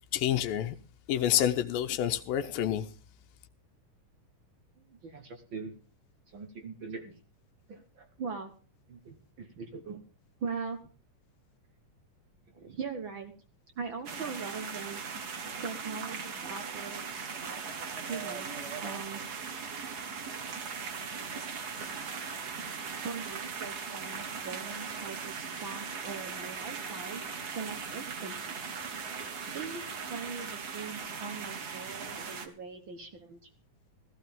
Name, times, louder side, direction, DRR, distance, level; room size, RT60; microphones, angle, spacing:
voice 1, 0.1-0.7 1.1-2.9, left 11 dB, 90° left, 2.6 m, -28 dB
voice 2, 4.8-5.8 6.3-7.2 7.7-8.5 8.9-10.0 10.4-10.8 12.5-13.3 13.7-15.0 15.6-17.3 18.0-18.5 18.8-19.2 22.9-27.2 27.5-28.5 29.5-33.5, right 5 dB, 60° right, 1.3 m, -41 dB
sound 1, 14.0-32.5, right 5 dB, 90° right, 0.8 m, -39 dB
15.0 x 14.5 x 3.6 m
omnidirectional pair, 4.0 m